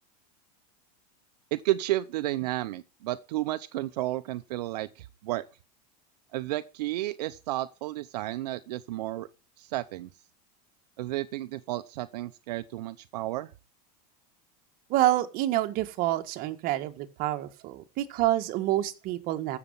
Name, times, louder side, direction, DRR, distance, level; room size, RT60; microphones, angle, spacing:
voice 1, 1.5-5.4 6.3-9.3 9.6-10.1 11.0-13.5, right 16 dB, 80° right, 0.8 m, -32 dB
voice 2, 14.9-19.6, right 15 dB, 45° right, 1.6 m, -27 dB
15.0 x 7.0 x 5.5 m
supercardioid pair, 140°, 20 cm